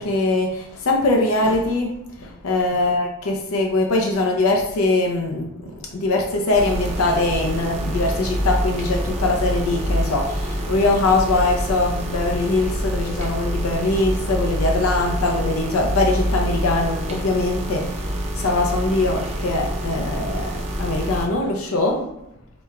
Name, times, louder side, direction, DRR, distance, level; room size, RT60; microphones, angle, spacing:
voice 1, 0.0-1.9 2.2-5.5 5.9-18.0 18.3-22.1, left 2 dB, 80° left, 1 dB, 0.5 m, -22 dB
sound 1, 6.5-21.3, equal, 30° right, 0.7 m, -26 dB
4.9 x 2.2 x 3.5 m, 0.87 s
head